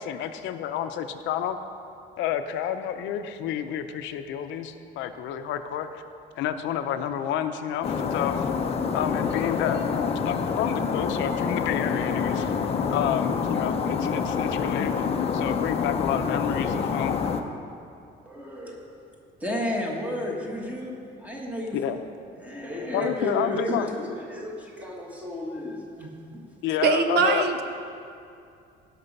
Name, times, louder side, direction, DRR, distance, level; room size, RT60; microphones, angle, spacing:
voice 1, 0.0-1.6 2.2-6.0 6.4-8.5 8.9-12.5 12.9-17.2 21.7-22.0 22.9-23.9 26.6-27.5, left 9 dB, 80° left, 9 dB, 0.7 m, -29 dB
sound 1, 7.8-17.4, left 6 dB, 30° left, 0.6 m, -27 dB
voice 2, 18.2-18.9 19.4-20.9 21.2-22.0 22.4-26.4, left 1 dB, 10° right, -1 dB, 1.5 m, -32 dB
voice 3, 26.8-27.6, right 5 dB, 60° right, 7 dB, 0.8 m, -22 dB
17.0 x 6.1 x 5.4 m, 2.5 s
cardioid pair, 165°, 19 cm